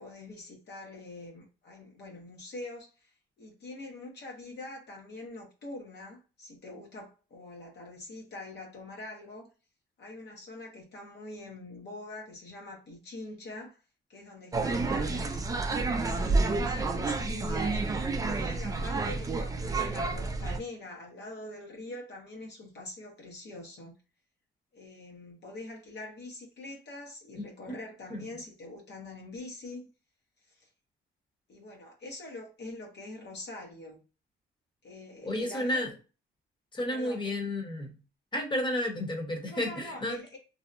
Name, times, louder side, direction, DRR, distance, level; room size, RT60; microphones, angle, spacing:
voice 1, 0.0-9.5 10.0-13.8 14.1-17.8 18.3-24.0 24.7-29.9 30.5-30.7 31.5-34.0 34.8-35.9 36.9-37.4 39.5-40.4, left 2 dB, 60° left, 0.8 m, -44 dB
sound 1, 14.5-20.6, right 3 dB, 15° right, 0.3 m, -29 dB
voice 2, 27.3-27.8 28.1-28.2 35.2-35.9 36.7-37.9 38.3-40.2, left 1 dB, 25° left, 0.8 m, -32 dB
2.7 x 2.0 x 2.5 m
cardioid pair, 90°, 20 cm